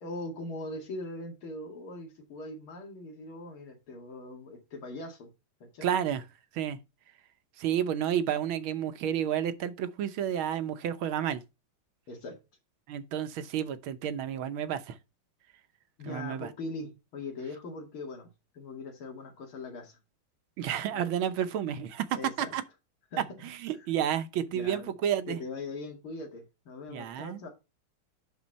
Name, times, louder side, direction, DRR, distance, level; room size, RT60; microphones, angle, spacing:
voice 1, 0.0-5.3 5.7-5.9 12.1-12.4 16.0-18.3 18.5-20.0 20.9-21.1 22.1-22.5 23.1-23.3 23.7-23.9 24.5-24.9 25.3-27.5, left 2 dB, 85° left, 2.9 m, -41 dB
voice 2, 5.8-6.2 6.5-6.8 7.6-11.4 12.9-15.0 16.1-16.5 20.6-22.6 23.2-25.4 26.9-27.5, right 9 dB, 80° right, 1.6 m, -31 dB
10.5 x 4.3 x 4.0 m
omnidirectional pair, 2.3 m